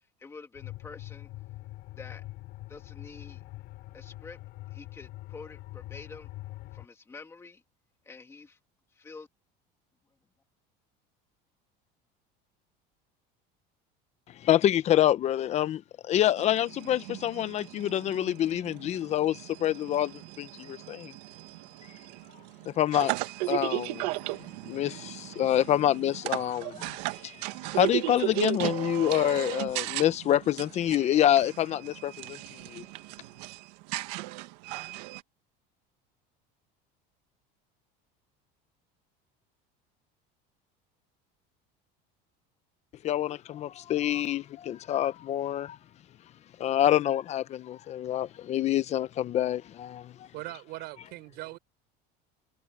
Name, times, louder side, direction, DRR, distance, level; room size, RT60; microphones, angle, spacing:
voice 1, 0.2-1.3 2.0-2.2 2.7-3.4 3.9-4.4 4.7-6.3 6.7-7.6 8.1-8.6 8.9-9.3, left 4 dB, 15° left, 2.1 m, -47 dB
sound 1, 0.5-6.9, left 18 dB, 55° left, 3.2 m, -44 dB
voice 2, 14.4-15.8 16.1-21.1 22.7-23.1 23.5-24.1 24.6-27.0 27.2-27.3 27.7-32.4 32.7-32.8 43.0-45.8 46.6-50.3, left 12 dB, 35° left, 0.9 m, -27 dB
sound 2, 16.4-35.2, right 20 dB, 85° right, 1.6 m, -36 dB
voice 3, 50.3-51.6, right 18 dB, 55° right, 3.8 m, -40 dB
cardioid pair, 160°, 20 cm